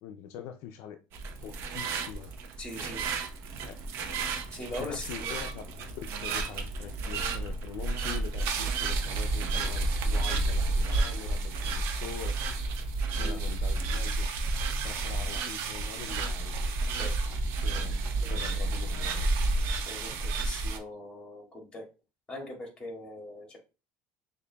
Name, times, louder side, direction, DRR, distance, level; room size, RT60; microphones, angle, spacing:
voice 1, 0.0-1.0 1.4-2.3 3.6-3.8 4.8-5.6 6.0-12.4 13.2-14.3 14.8-16.6 17.6-18.0 18.3-19.3, left 9 dB, 65° left, 0.4 m, -43 dB
sound 1, 1.1-20.8, right 3 dB, 60° right, 0.8 m, -31 dB
voice 2, 2.6-3.0 4.5-5.3 13.1-13.4 16.9-17.1 17.7-17.8 18.3-18.4 19.8-20.1 20.4-21.9 22.3-23.6, left 1 dB, 20° left, 1.8 m, -41 dB
6.5 x 2.6 x 2.2 m
cardioid pair, 125°, 5 cm